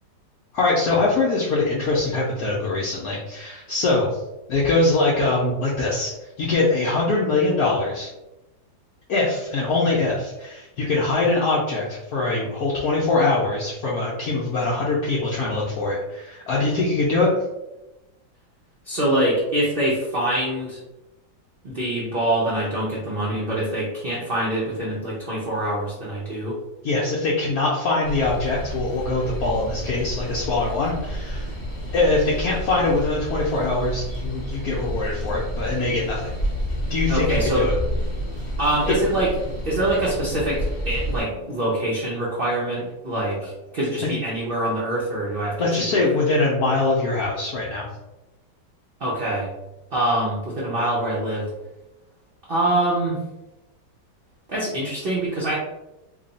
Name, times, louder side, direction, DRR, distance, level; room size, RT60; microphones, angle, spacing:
voice 1, 0.5-4.2 4.5-6.1 6.4-8.1 9.1-17.3 26.8-31.5 31.9-36.3 36.9-37.7 45.6-47.9, left 3 dB, 65° left, -5 dB, 1.0 m, -23 dB
voice 2, 18.8-20.8 21.6-26.6 37.1-37.7 38.6-39.3 39.6-45.6 45.9-46.1 49.0-49.5 49.9-51.5 52.5-53.2 54.5-55.5, right 1 dB, 55° right, -6 dB, 0.6 m, -24 dB
sound 1, 28.0-41.2, equal, 15° left, 0.8 m, -29 dB
3.2 x 2.3 x 3.9 m, 0.98 s
omnidirectional pair, 2.0 m